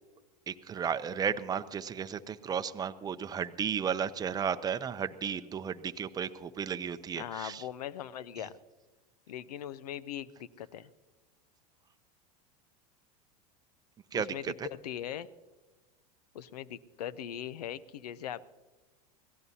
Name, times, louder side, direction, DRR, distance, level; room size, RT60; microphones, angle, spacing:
voice 1, 0.5-7.7 8.4-8.5 14.1-14.7, right 7 dB, 20° right, 10 dB, 0.6 m, -34 dB
voice 2, 7.2-8.5 9.3-10.9 14.1-14.4 14.8-15.3 16.3-18.5, left 10 dB, 85° left, 20 dB, 0.6 m, -40 dB
24.5 x 16.5 x 2.8 m, 1.2 s
hypercardioid pair, 105°, 20 cm